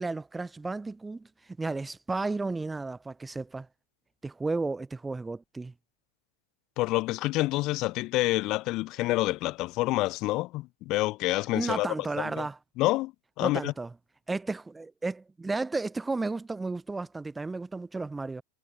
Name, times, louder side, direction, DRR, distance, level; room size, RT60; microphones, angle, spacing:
voice 1, 0.0-3.7 4.2-5.7 11.5-12.6 13.4-13.9 14.3-18.4, right 3 dB, 10° right, 0.7 m, -33 dB
voice 2, 6.8-11.9 12.2-12.4 12.8-13.1 13.4-13.7, left 19 dB, 40° left, 1.0 m, -28 dB
figure-of-eight pair, 90°, 0 cm